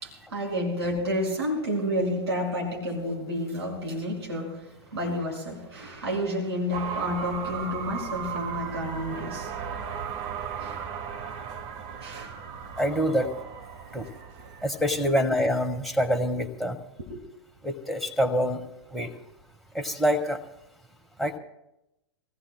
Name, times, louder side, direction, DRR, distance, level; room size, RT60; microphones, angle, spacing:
voice 1, 0.0-4.6 4.9-9.5 10.6-10.8 12.0-12.3 13.2-13.3 15.0-15.2 17.1-17.2, equal, 70° right, -3 dB, 5.4 m, -30 dB
sound 1, 6.7-15.3, right 6 dB, 35° right, 1.4 m, -36 dB
voice 2, 12.8-13.3 13.9-14.1 14.6-16.8 17.6-18.6 18.9-19.1 19.7-20.4 21.2-21.4, equal, ahead, 2 dB, 1.5 m, -25 dB
26.5 x 17.5 x 2.2 m, 0.88 s
figure-of-eight pair, 100°, 14 cm